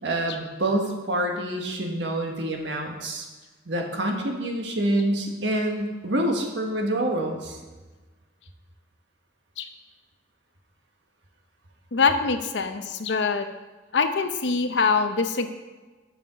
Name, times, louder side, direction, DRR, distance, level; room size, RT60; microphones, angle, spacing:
voice 1, 0.0-3.3 3.6-7.6, right 1 dB, 75° right, 2 dB, 1.5 m, -27 dB
voice 2, 11.9-13.5 13.9-15.5, left 4 dB, 75° left, 8 dB, 0.7 m, -24 dB
7.1 x 7.0 x 6.1 m, 1.3 s
head